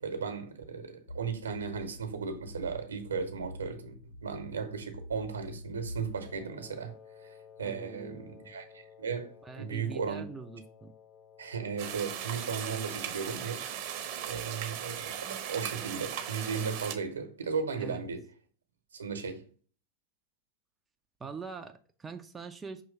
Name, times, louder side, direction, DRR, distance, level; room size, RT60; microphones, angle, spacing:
voice 1, 0.0-3.9 4.2-6.9 7.2-7.3 7.6-10.2 11.4-13.6 14.3-18.2 18.9-19.4, right 5 dB, 70° right, 1.0 m, -36 dB
sound 1, 1.1-6.5, left 1 dB, 65° left, 0.4 m, -46 dB
Wind instrument woodwind instrument, 6.2-13.5, left 7 dB, 45° left, 1.6 m, -55 dB
voice 2, 7.6-8.5 9.4-10.9 17.8-18.1 21.2-22.8, right 4 dB, 15° right, 0.5 m, -43 dB
sound 2, 11.8-16.9, right 9 dB, 45° right, 0.8 m, -38 dB
5.8 x 3.1 x 5.2 m
figure-of-eight pair, 90°, 0 cm